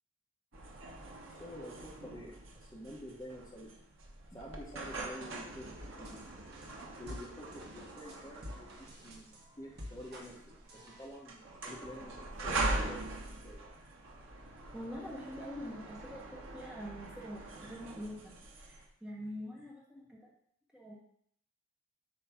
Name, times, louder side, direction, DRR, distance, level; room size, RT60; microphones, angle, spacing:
sound 1, 0.5-18.8, right 2 dB, 70° right, 1.1 m, -42 dB
voice 1, 1.4-3.8 4.3-6.2 7.0-10.4 10.7-13.1 13.4-13.6, equal, 15° left, -5 dB, 1.2 m, -49 dB
sound 2, 5.8-11.1, left 1 dB, 50° right, 1.5 m, -50 dB
voice 2, 14.7-20.3 20.7-21.0, equal, 5° right, -4 dB, 1.3 m, -45 dB
8.5 x 3.1 x 5.8 m, 0.67 s
head